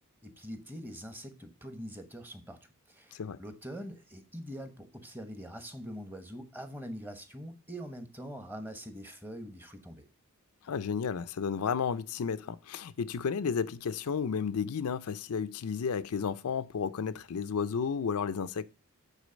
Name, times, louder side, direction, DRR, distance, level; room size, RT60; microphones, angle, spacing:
voice 1, 0.2-2.6 2.9-10.1, equal, 10° right, 0.9 m, -43 dB
voice 2, 10.6-18.6, left 6 dB, 75° left, 0.5 m, -32 dB
8.3 x 4.0 x 5.1 m
head